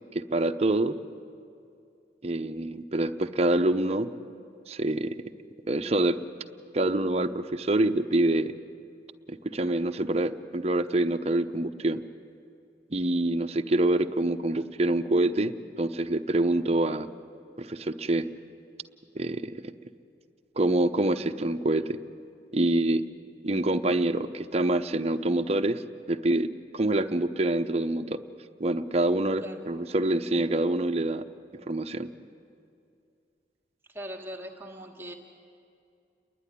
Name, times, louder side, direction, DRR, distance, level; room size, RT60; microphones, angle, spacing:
voice 1, 0.1-1.0 2.2-4.1 4.7-5.1 5.7-6.2 6.7-8.5 9.3-12.0 12.9-17.1 17.6-18.2 19.2-19.6 20.6-22.0 22.5-23.0 23.4-25.8 26.1-26.5 26.7-28.2 28.6-31.2 31.7-32.1, right 2 dB, 35° right, 8 dB, 0.7 m, -26 dB
voice 2, 33.9-35.1, equal, 15° right, 0 dB, 1.6 m, -40 dB
29.5 x 11.0 x 10.0 m, 2.4 s
head